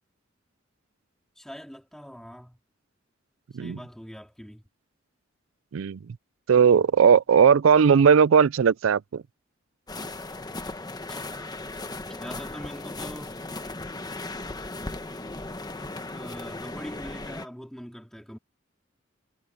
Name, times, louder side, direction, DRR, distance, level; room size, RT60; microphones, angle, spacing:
voice 1, 1.4-2.6 3.6-4.6 11.1-11.5 12.1-13.4 16.1-18.4, equal, ahead, 3.9 m, -42 dB
voice 2, 6.5-9.2, right 6 dB, 85° right, 0.4 m, -18 dB
sound 1, 9.9-17.5, left 2 dB, 20° left, 1.2 m, -37 dB
head